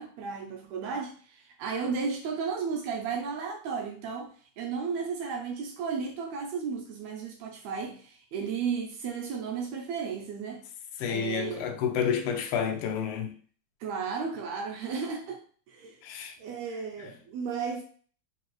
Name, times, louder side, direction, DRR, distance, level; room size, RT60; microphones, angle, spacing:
voice 1, 0.0-4.3 4.6-10.6 11.1-11.7 13.8-15.4 15.7-16.0 16.4-17.8, right 5 dB, 75° right, 1.7 m, -34 dB
voice 2, 11.0-13.3 16.0-16.4, left 7 dB, 75° left, 1.5 m, -29 dB
4.5 x 2.8 x 3.0 m
omnidirectional pair, 3.4 m